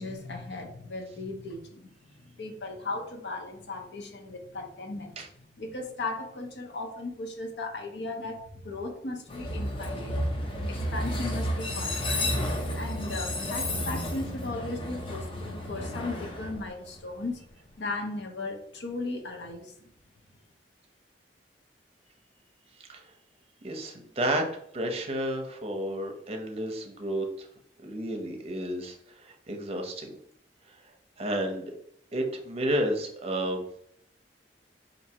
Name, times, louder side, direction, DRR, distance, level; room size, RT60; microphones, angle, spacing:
voice 1, 0.0-5.2 5.6-8.4 8.6-10.1 10.5-12.3 12.7-17.4 17.8-19.7, left 2 dB, 70° left, 4 dB, 0.7 m, -37 dB
Train, 9.3-17.3, left 1 dB, 30° left, 0.6 m, -32 dB
voice 2, 23.6-24.4 24.7-27.5 27.8-30.2 31.2-31.7 32.1-33.6, right 1 dB, 35° right, 3 dB, 0.7 m, -31 dB
4.4 x 2.6 x 2.8 m, 0.68 s
head